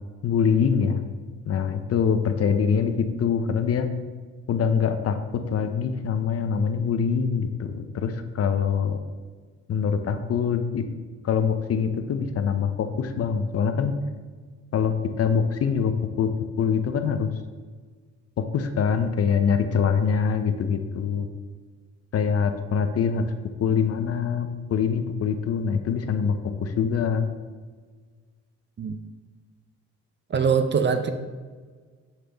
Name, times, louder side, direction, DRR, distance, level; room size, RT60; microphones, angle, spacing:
voice 1, 0.2-1.0 1.4-3.9 4.5-5.2 5.5-9.0 9.7-10.8 11.2-13.9 14.7-16.3 16.6-17.3 18.4-21.3 22.1-23.3 23.6-27.3, left 6 dB, 50° left, 8 dB, 0.7 m, -24 dB
voice 2, 30.3-31.1, right 6 dB, 40° right, 8 dB, 0.6 m, -22 dB
6.7 x 5.8 x 3.4 m, 1.5 s
cardioid pair, 90°, 30 cm